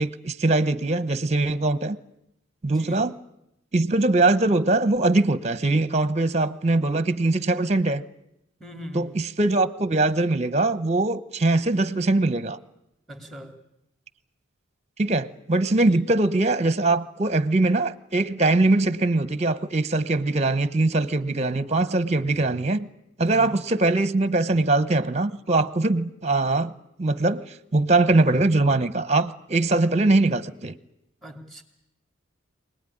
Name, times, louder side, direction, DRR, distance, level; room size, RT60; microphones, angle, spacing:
voice 1, 0.0-2.0 2.6-3.1 3.7-8.0 8.9-12.6 15.0-22.9 23.2-26.7 27.0-27.4 27.7-30.7, right 2 dB, 35° right, 0.9 m, -22 dB
voice 2, 2.7-3.0 8.6-9.1 13.1-13.6 15.9-16.1 23.2-23.5 31.2-31.6, equal, ahead, 3.0 m, -40 dB
25.0 x 19.0 x 10.0 m
head